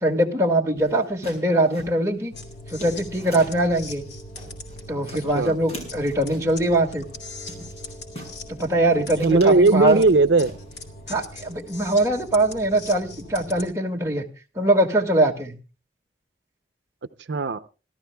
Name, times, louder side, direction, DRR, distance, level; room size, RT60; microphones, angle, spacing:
voice 1, 0.0-2.3 2.7-4.0 4.9-7.1 8.6-10.0 11.1-14.2 14.6-15.6, right 1 dB, 15° right, 0 dB, 1.9 m, -22 dB
sound 1, 0.7-3.7 4.1-4.8 5.1-6.6 7.1-7.2 7.5-8.4 8.8-8.9 9.2-10.8 11.1-11.7, equal, 40° left, 6.7 m, -42 dB
sound 2, 2.3-13.7, left 2 dB, 70° left, 2.8 m, -40 dB
voice 2, 8.9-10.5 17.3-17.6, right 3 dB, 85° right, 11 dB, 0.6 m, -18 dB
27.5 x 12.5 x 2.3 m, 0.33 s
head